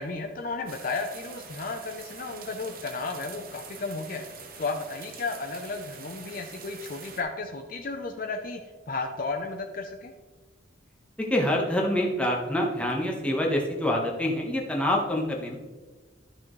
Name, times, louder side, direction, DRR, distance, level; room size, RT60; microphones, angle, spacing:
voice 1, 0.0-4.3 4.6-8.6 8.9-10.1, left 3 dB, 45° left, 4 dB, 0.6 m, -33 dB
sound 1, 0.7-7.2, right 5 dB, 50° right, 1.0 m, -45 dB
voice 2, 11.2-15.6, left 1 dB, 5° left, -1 dB, 1.3 m, -26 dB
13.0 x 6.0 x 3.2 m, 1.3 s
head